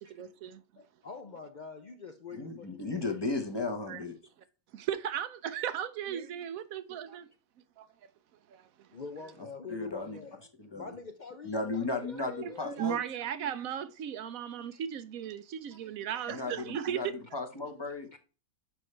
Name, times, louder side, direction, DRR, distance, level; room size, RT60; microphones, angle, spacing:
voice 1, 0.0-0.6 3.9-4.0 4.7-7.3 7.8-7.9 8.5-8.9 12.4-17.1, right 9 dB, 75° right, 1.0 m, -36 dB
voice 2, 0.8-3.1 8.9-10.4 10.7-12.8 14.7-14.8 15.8-15.9 18.1-18.2, left 5 dB, 60° left, 0.5 m, -45 dB
voice 3, 2.3-4.1 9.7-10.2 10.6-10.9 11.4-13.0 16.3-18.1, left 3 dB, 20° left, 0.9 m, -35 dB
7.2 x 5.4 x 3.2 m
omnidirectional pair, 1.5 m